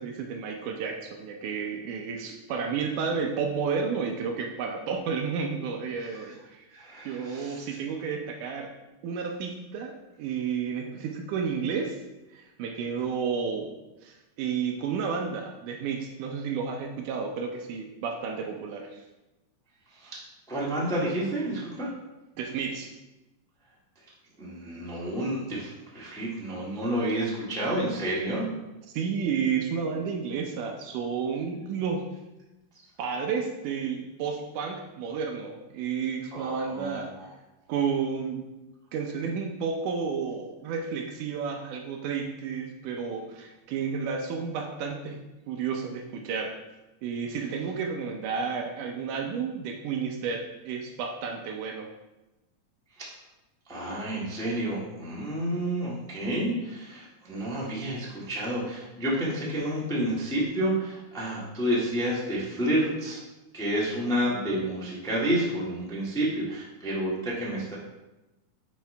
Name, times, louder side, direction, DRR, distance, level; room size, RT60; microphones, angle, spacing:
voice 1, 0.0-6.7 7.1-8.7 9.0-12.0 12.3-13.7 14.0-19.0 22.4-22.9 28.9-32.1 33.0-37.1 37.7-38.4 38.9-46.6 47.0-51.9, right 6 dB, 75° right, 3 dB, 2.0 m, -31 dB
voice 2, 6.7-7.8 19.9-20.2 20.5-21.9 24.4-28.4 36.3-37.3 53.0-53.1 53.7-63.2 63.5-67.7, right 1 dB, 5° left, -7 dB, 0.4 m, -30 dB
10.0 x 4.6 x 3.3 m, 1.0 s
omnidirectional pair, 4.0 m